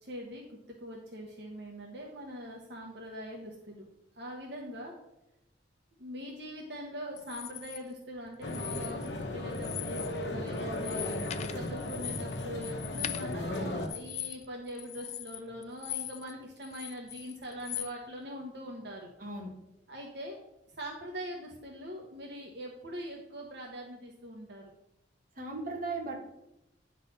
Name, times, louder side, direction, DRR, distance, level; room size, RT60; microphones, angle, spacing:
voice 1, 0.0-3.9 4.1-4.9 6.0-11.2 11.5-19.1 19.9-20.4 20.7-24.7, equal, 70° right, -1 dB, 1.1 m, -42 dB
sound 1, 7.2-7.8 8.4-9.2 9.5-10.2 10.5-16.3 16.6-17.9, left 12 dB, 40° left, 0.3 m, -40 dB
sound 2, 8.4-13.9, left 1 dB, 75° left, 1.0 m, -36 dB
voice 2, 19.2-19.5 25.4-26.2, right 3 dB, 50° right, -1 dB, 1.6 m, -36 dB
9.8 x 4.0 x 5.5 m, 0.87 s
head